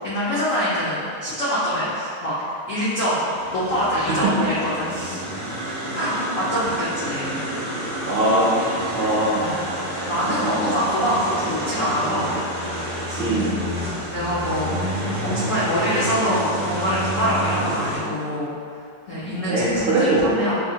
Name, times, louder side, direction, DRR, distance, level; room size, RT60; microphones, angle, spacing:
voice 1, 0.0-2.3 2.7-3.2 3.5-5.2 5.9-7.4 9.3-9.6 10.1-12.3 13.1-13.2 13.8-14.7 15.2-18.8 19.1-20.5, equal, 80° left, -11 dB, 0.7 m, -24 dB
sound 1, 3.3-18.0, equal, 45° right, 0.3 m, -29 dB
voice 2, 3.9-4.3 8.0-9.5 10.3-10.7 13.2-13.6 19.3-20.5, right 1 dB, 75° right, -5 dB, 1.1 m, -22 dB
5.3 x 2.1 x 2.7 m, 2.4 s
omnidirectional pair, 2.3 m